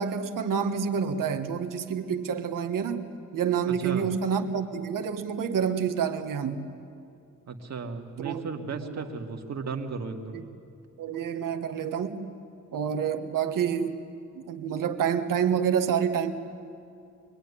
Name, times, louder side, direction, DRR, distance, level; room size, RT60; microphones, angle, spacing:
voice 1, 0.0-6.7 8.2-8.4 8.8-9.0 10.3-10.4 11.0-12.3 12.7-14.0 14.3-16.3, right 7 dB, 90° right, 7 dB, 1.6 m, -28 dB
voice 2, 3.7-4.1 7.5-10.4, right 4 dB, 55° right, 3 dB, 2.2 m, -35 dB
24.5 x 23.5 x 10.0 m, 2.5 s
wide cardioid pair, 140°, 32 cm